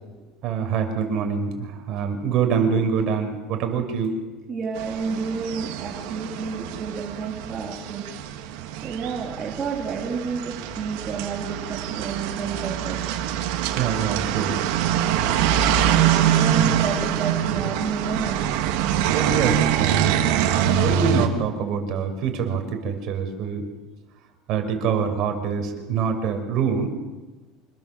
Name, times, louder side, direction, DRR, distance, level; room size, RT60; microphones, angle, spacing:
voice 1, 0.4-4.1 13.7-14.6 19.1-20.2 20.8-23.6 24.5-26.9, right 6 dB, 50° right, 5 dB, 5.8 m, -25 dB
voice 2, 4.5-8.0 8.8-13.0 15.9-18.4, right 5 dB, 25° right, -3 dB, 3.2 m, -30 dB
sound 1, 4.8-21.3, right 10 dB, 75° right, 3.1 m, -24 dB
27.0 x 19.5 x 7.7 m, 1.2 s
cardioid pair, 150°, 0 cm